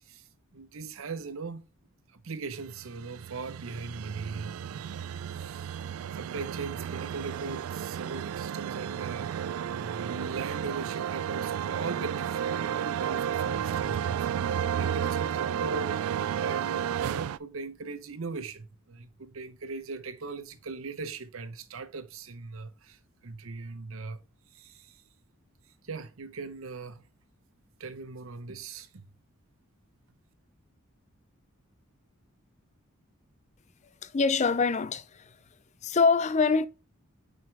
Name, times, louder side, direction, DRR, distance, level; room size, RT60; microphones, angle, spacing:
voice 1, 0.5-1.7 2.1-5.8 6.1-9.3 9.7-14.2 14.8-24.2 24.5-25.0 25.8-27.1 27.8-29.0, right 4 dB, 70° right, 0.8 m, -40 dB
sound 1, 2.7-17.4, right 9 dB, 90° right, 0.3 m, -32 dB
voice 2, 34.0-35.4 35.8-36.7, left 4 dB, 35° left, 0.5 m, -24 dB
6.2 x 5.2 x 3.4 m
head